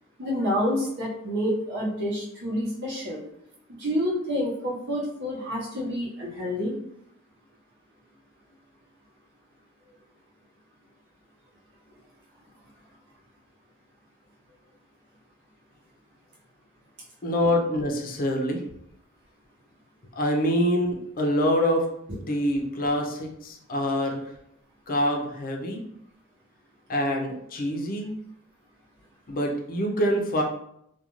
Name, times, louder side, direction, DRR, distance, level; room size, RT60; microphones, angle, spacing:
voice 1, 0.2-3.2 3.8-6.8, equal, 55° right, -4 dB, 0.9 m, -28 dB
voice 2, 17.2-18.6 20.2-21.9 22.2-24.2 24.9-25.8 26.9-28.1 29.3-30.4, equal, 40° left, 1 dB, 0.5 m, -25 dB
2.4 x 2.2 x 3.0 m, 0.74 s
head